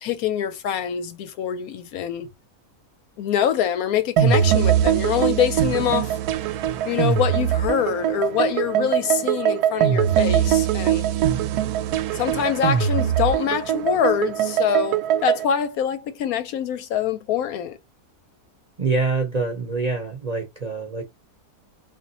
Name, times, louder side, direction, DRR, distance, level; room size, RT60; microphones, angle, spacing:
voice 1, 0.0-2.3 3.2-6.2 6.8-11.1 12.1-17.8, left 9 dB, 70° left, 1.0 m, -25 dB
sound 1, 4.2-15.5, right 10 dB, 75° right, 1.1 m, -22 dB
voice 2, 18.8-21.0, right 4 dB, 40° right, 0.6 m, -25 dB
3.5 x 2.5 x 4.0 m
omnidirectional pair, 1.7 m